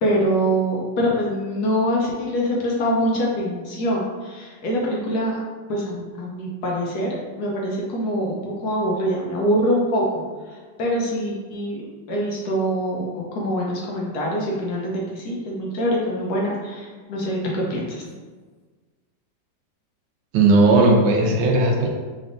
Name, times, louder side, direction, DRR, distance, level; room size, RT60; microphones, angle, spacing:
voice 1, 0.0-5.4 5.7-8.4 8.6-10.2 10.8-11.8 12.1-18.0, equal, 70° left, -3 dB, 1.0 m, -24 dB
voice 2, 20.3-21.9, right 2 dB, 90° right, 0 dB, 1.5 m, -16 dB
3.9 x 3.5 x 2.5 m, 1.4 s
omnidirectional pair, 2.1 m